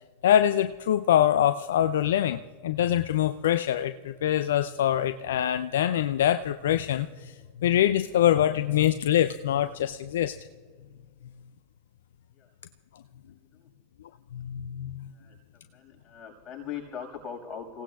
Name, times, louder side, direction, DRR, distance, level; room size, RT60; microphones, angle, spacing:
voice 1, 0.2-7.3 7.6-10.3 14.3-15.1, left 11 dB, 70° left, 11 dB, 0.4 m, -24 dB
voice 2, 15.7-17.8, left 7 dB, 30° left, -1 dB, 5.8 m, -40 dB
29.0 x 17.0 x 2.3 m, 1.5 s
hypercardioid pair, 90°, 0 cm